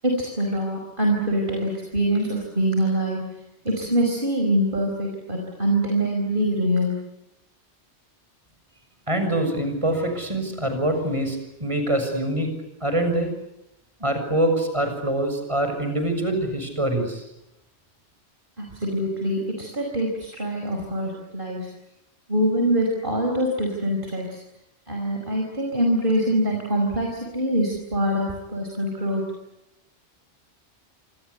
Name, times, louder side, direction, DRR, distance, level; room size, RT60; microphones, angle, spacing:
voice 1, 0.0-3.2 3.7-7.0 18.6-21.7 22.3-24.4 24.9-29.2, right 1 dB, 50° right, 1 dB, 5.4 m, -24 dB
voice 2, 9.1-12.5 12.8-13.3 14.0-17.2, right 1 dB, 25° right, 6 dB, 6.8 m, -24 dB
27.5 x 26.0 x 8.2 m, 0.86 s
omnidirectional pair, 1.2 m